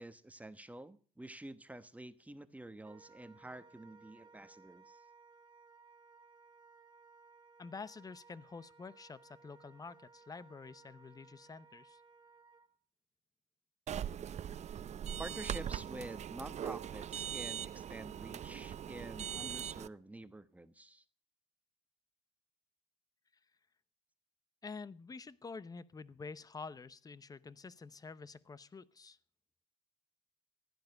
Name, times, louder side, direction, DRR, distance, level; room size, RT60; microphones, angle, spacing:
voice 1, 0.0-5.0 15.2-21.0, right 1 dB, 10° right, 11 dB, 1.1 m, -49 dB
Wind instrument woodwind instrument, 2.8-12.7, right 4 dB, 25° right, 2.5 m, -61 dB
voice 2, 7.6-12.0 24.6-29.2, left 4 dB, 20° left, 18 dB, 0.8 m, -48 dB
sound 1, 13.9-19.9, right 9 dB, 40° right, 0.6 m, -41 dB
15.5 x 11.0 x 6.5 m, 0.42 s
cardioid pair, 110°, 17 cm